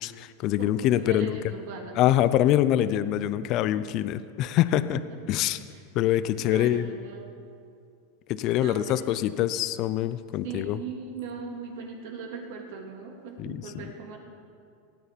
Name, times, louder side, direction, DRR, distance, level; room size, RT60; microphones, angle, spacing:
voice 1, 0.0-1.4 2.0-5.0 5.3-5.6 5.9-6.9 8.3-10.8 13.4-13.9, left 12 dB, 40° left, 14 dB, 0.5 m, -25 dB
voice 2, 0.6-2.0 5.7-5.8 6.4-7.3 8.6-9.5 10.4-14.2, right 5 dB, 65° right, 2 dB, 2.5 m, -40 dB
17.0 x 9.7 x 5.2 m, 2.4 s
supercardioid pair, 140°, 0 cm